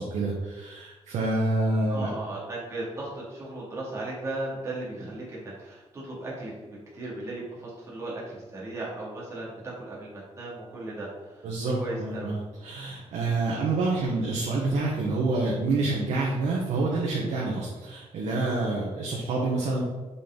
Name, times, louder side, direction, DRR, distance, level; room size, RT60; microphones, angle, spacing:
voice 1, 0.0-2.1 11.4-19.8, right 2 dB, 85° right, -3 dB, 1.3 m, -27 dB
voice 2, 1.9-11.5 11.8-12.3, right 2 dB, 25° right, -7 dB, 2.3 m, -36 dB
6.6 x 5.3 x 3.8 m, 1.2 s
wide cardioid pair, 165°, 12 cm